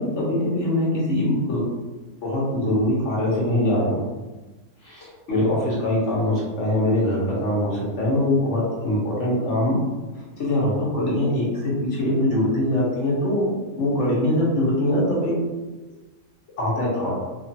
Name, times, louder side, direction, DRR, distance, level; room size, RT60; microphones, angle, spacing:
voice 1, 0.0-1.6 2.2-4.0 4.8-9.8 10.1-13.5 13.8-15.3 16.6-17.1, left 1 dB, 55° left, -5 dB, 1.1 m, -23 dB
2.9 x 2.3 x 2.7 m, 1.2 s
omnidirectional pair, 1.6 m